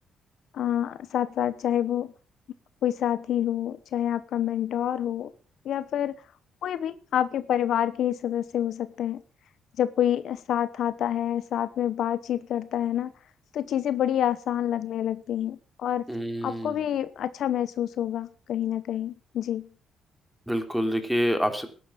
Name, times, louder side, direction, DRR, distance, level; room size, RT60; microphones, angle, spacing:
voice 1, 0.5-2.1 2.8-5.3 5.6-6.1 6.6-9.2 9.8-13.1 13.5-16.1 16.4-19.7, left 10 dB, 70° left, 14 dB, 0.9 m, -27 dB
voice 2, 16.1-16.9 20.5-21.7, equal, ahead, 7 dB, 3.1 m, -27 dB
14.5 x 11.0 x 5.1 m, 0.38 s
cardioid pair, 90°, 0 cm